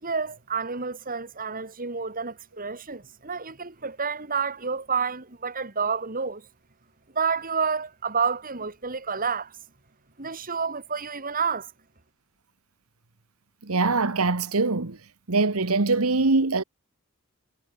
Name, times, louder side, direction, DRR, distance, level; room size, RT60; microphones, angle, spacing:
voice 1, 0.0-6.5 7.1-9.6 10.2-11.7, right 5 dB, 40° right, 3.1 m, -29 dB
voice 2, 13.6-15.0 15.3-16.6, right 3 dB, 75° right, 1.4 m, -23 dB
head